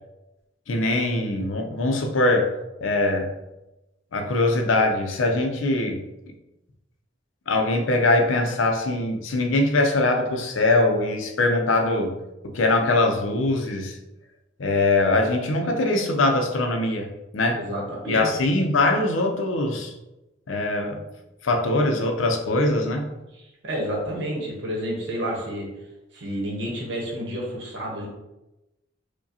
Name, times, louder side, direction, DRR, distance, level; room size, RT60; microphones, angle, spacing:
voice 1, 0.7-2.5 2.8-3.3 4.1-6.0 7.5-12.2 12.4-14.0 14.6-17.1 17.3-17.6 18.1-19.9 20.5-21.0 21.4-23.1, left 2 dB, 80° left, 3 dB, 0.5 m, -22 dB
voice 2, 17.5-18.3 23.3-25.7 26.1-28.1, equal, 65° right, -2 dB, 1.0 m, -30 dB
4.7 x 2.2 x 2.7 m, 0.97 s
head